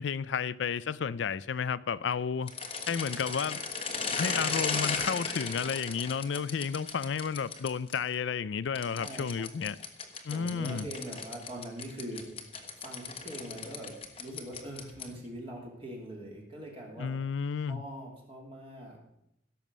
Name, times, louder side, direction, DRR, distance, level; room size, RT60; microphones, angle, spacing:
voice 1, 0.0-2.5 2.9-3.6 4.2-9.8 10.2-10.9 17.0-17.8, left 6 dB, 70° left, 0.4 m, -32 dB
sound 1, 2.4-8.0 8.8-15.2, left 5 dB, 30° left, 1.3 m, -36 dB
voice 2, 9.0-9.5 10.3-12.2 12.5-13.9 14.2-17.1 17.7-19.0, right 1 dB, 30° right, 2.8 m, -42 dB
16.0 x 7.1 x 6.2 m
head